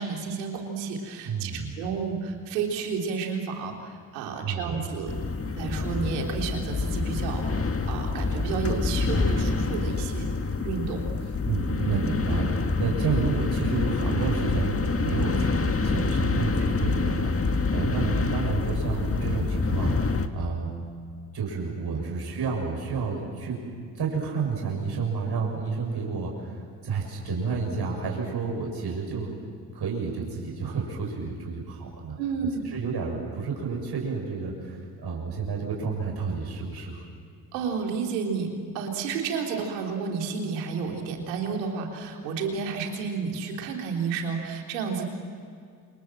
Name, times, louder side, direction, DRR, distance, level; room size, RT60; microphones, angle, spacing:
voice 1, 0.0-5.3 5.6-10.3 10.6-11.0 11.7-11.9 32.2-32.6 37.5-45.0, right 5 dB, 90° right, 2 dB, 3.7 m, -31 dB
voice 2, 1.3-1.7 4.4-4.8 11.5-20.7 21.3-23.6 24.0-29.4 29.7-32.2 32.7-37.0, right 5 dB, 50° right, -1 dB, 7.1 m, -30 dB
sound 1, 5.1-20.3, left 3 dB, 30° left, 2.1 m, -27 dB
28.5 x 27.0 x 7.7 m, 2.3 s
hypercardioid pair, 50°, 49 cm